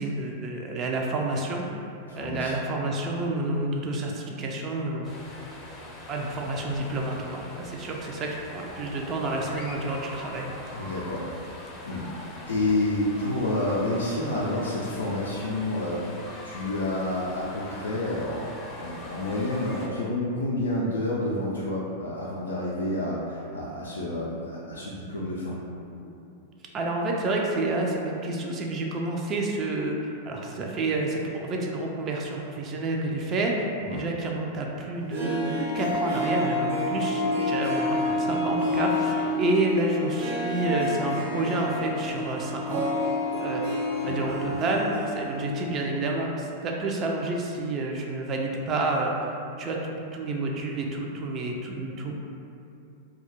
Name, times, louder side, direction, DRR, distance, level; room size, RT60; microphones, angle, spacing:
voice 1, 0.0-1.7 2.1-5.1 6.1-10.5 26.0-26.1 26.7-33.7 33.9-42.8 43.4-43.7 44.1-49.1 49.6-49.8 50.1-52.1, right 2 dB, 35° right, 0 dB, 0.4 m, -29 dB
voice 2, 2.1-2.5 10.7-11.2 11.8-12.0 12.5-16.0 16.4-18.5 18.7-25.6 33.9-34.0 44.0-44.6, left 1 dB, 90° left, -6 dB, 0.3 m, -29 dB
sound 1, 5.0-19.9, left 1 dB, 30° left, 0.5 m, -42 dB
Harp, 34.9-46.0 46.2-46.3, left 1 dB, 60° right, 0.7 m, -29 dB
2.2 x 2.0 x 2.9 m, 2.7 s
hypercardioid pair, 105°, 0 cm